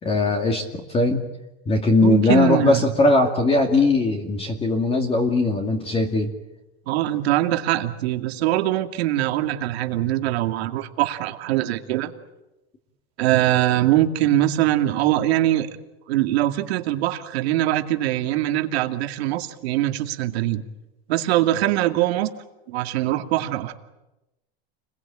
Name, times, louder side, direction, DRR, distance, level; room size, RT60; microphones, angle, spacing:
voice 1, 0.0-1.2 1.7-6.3, left 2 dB, 20° left, 4 dB, 2.4 m, -20 dB
voice 2, 2.0-3.1 6.9-12.1 13.2-15.8 16.1-20.6 21.1-22.3 22.7-23.7, right 14 dB, 80° right, 6 dB, 2.4 m, -22 dB
30.0 x 21.5 x 8.8 m, 0.98 s
supercardioid pair, 150°, 31 cm